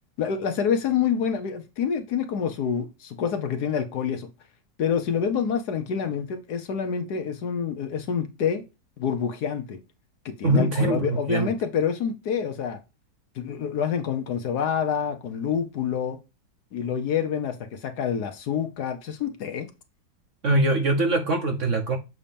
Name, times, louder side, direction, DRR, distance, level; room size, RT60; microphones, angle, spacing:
voice 1, 0.2-4.3 4.8-8.6 9.0-9.8 10.2-12.8 13.4-16.2 16.7-19.7, left 7 dB, 65° left, 1.3 m, -27 dB
voice 2, 10.4-11.5 20.4-22.0, right 2 dB, 55° right, 0.9 m, -22 dB
7.3 x 2.8 x 5.1 m
omnidirectional pair, 2.0 m